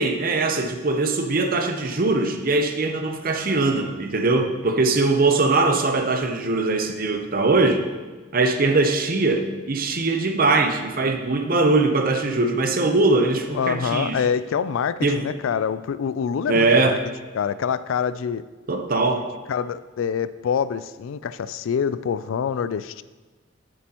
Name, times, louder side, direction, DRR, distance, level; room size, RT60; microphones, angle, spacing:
voice 1, 0.0-7.8 8.3-14.2 15.0-15.2 16.5-17.0 18.7-19.3, right 3 dB, 45° right, 6 dB, 0.7 m, -21 dB
voice 2, 13.5-17.0 17.3-18.4 19.5-23.0, left 7 dB, 85° left, 15 dB, 0.3 m, -25 dB
10.5 x 7.6 x 2.9 m, 1.3 s
head